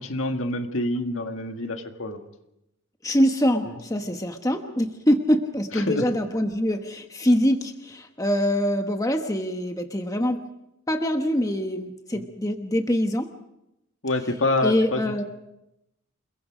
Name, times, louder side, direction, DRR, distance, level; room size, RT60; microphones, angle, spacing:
voice 1, 0.0-2.2 5.8-6.1 12.1-12.3 14.0-15.2, left 2 dB, 65° left, 5 dB, 1.8 m, -27 dB
voice 2, 3.0-10.4 10.9-13.3 14.6-15.2, equal, 15° left, 5 dB, 1.2 m, -24 dB
28.5 x 22.0 x 5.1 m, 0.86 s
head